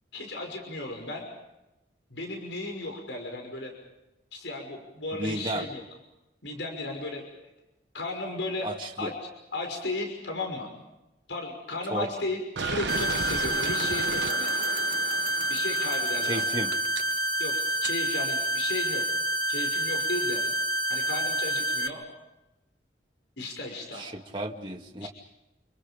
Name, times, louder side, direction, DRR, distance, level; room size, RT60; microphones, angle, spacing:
voice 1, 0.1-1.3 2.1-3.7 4.3-5.8 6.4-7.2 7.9-8.7 9.0-9.1 9.5-10.7 11.3-14.5 15.5-16.4 17.4-17.6 17.8-19.0 19.5-20.4 20.9-22.0 23.4-24.1 25.0-25.1, left 2 dB, 75° left, 3 dB, 6.0 m, -35 dB
voice 2, 5.2-5.7 8.6-9.1 11.9-12.1 16.2-16.7 23.9-25.1, right 1 dB, 25° right, 0 dB, 2.0 m, -33 dB
sound 1, 12.6-17.9, right 5 dB, 75° right, 0.9 m, -35 dB
sound 2, 12.9-21.9, equal, 50° right, 2.2 m, -28 dB
30.0 x 29.0 x 5.3 m, 0.97 s
head